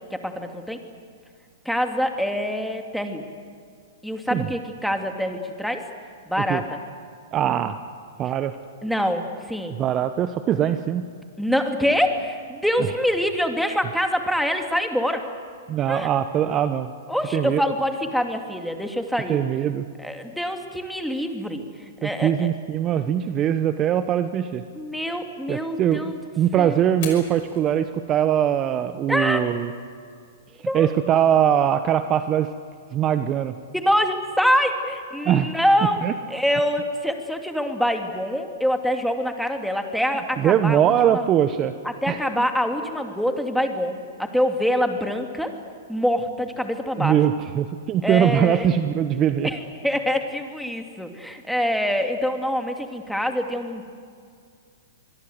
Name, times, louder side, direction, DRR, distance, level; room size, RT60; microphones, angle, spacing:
voice 1, 0.1-0.8 1.6-3.3 4.0-5.8 6.3-6.8 8.8-9.8 11.4-15.2 15.9-16.1 17.1-19.4 20.0-22.5 24.7-26.2 26.6-26.9 29.1-29.5 30.7-30.9 33.7-36.0 36.3-41.2 41.8-45.6 45.9-47.2 48.0-48.7 49.4-53.8, equal, ahead, 5 dB, 2.5 m, -25 dB
voice 2, 7.3-7.8 8.2-8.6 9.8-11.0 15.7-16.9 17.3-17.6 19.3-19.9 22.0-24.6 25.5-29.7 30.7-32.5 32.9-33.6 35.2-35.5 36.0-36.1 40.4-41.7 42.1-42.5 47.0-49.5, right 10 dB, 30° right, 10 dB, 1.0 m, -22 dB
Fire, 26.9-34.9, left 8 dB, 55° left, 5.7 m, -47 dB
25.5 x 21.5 x 8.1 m, 2.3 s
hypercardioid pair, 115°, 0 cm